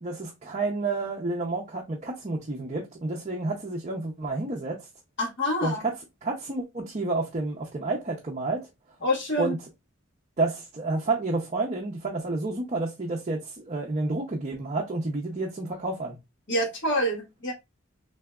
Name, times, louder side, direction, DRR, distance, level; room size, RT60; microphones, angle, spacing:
voice 1, 0.0-4.9 5.6-8.7 9.4-9.6 10.4-16.2, right 3 dB, 30° right, 0.5 m, -30 dB
voice 2, 5.2-5.8 9.0-9.5 16.5-17.5, equal, 55° left, 1.3 m, -26 dB
3.4 x 2.7 x 2.2 m
head